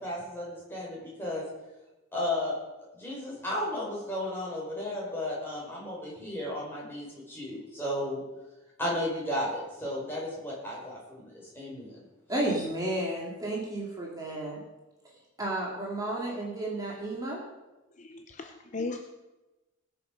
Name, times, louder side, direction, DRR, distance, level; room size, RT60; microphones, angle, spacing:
voice 1, 0.0-1.4 2.1-2.6 2.9-8.2 8.8-12.0, left 1 dB, 10° left, -5 dB, 5.0 m, -34 dB
voice 2, 12.3-14.6 15.4-17.4, right 1 dB, 15° right, -4 dB, 2.5 m, -32 dB
voice 3, 18.0-19.0, left 3 dB, 35° left, 5 dB, 0.6 m, -36 dB
20.5 x 6.9 x 5.2 m, 1.1 s
head